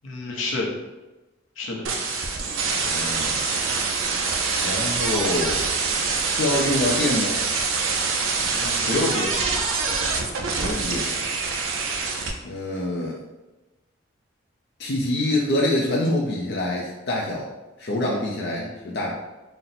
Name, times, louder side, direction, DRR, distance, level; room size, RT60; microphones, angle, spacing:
voice 1, 0.0-0.7 1.6-1.8 8.5-9.3 18.5-19.1, left 2 dB, 80° left, -1 dB, 0.8 m, -29 dB
sound 1, 1.8-12.3, right 4 dB, 80° right, 0.5 m, -25 dB
voice 2, 2.9-3.4 4.6-5.6 6.2-7.4 10.6-11.1 12.4-13.2 14.8-17.5 17.8-19.1, left 1 dB, 50° left, -3 dB, 0.5 m, -25 dB
4.1 x 2.1 x 4.0 m, 1.1 s
head